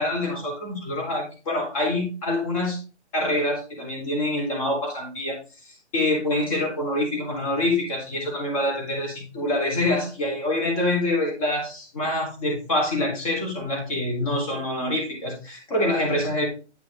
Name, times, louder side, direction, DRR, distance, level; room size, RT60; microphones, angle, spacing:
voice 1, 0.0-2.8 3.1-5.4 5.6-16.5, left 1 dB, 30° left, 0 dB, 3.6 m, -26 dB
9.5 x 6.1 x 3.6 m, 0.32 s
hypercardioid pair, 165°, 36 cm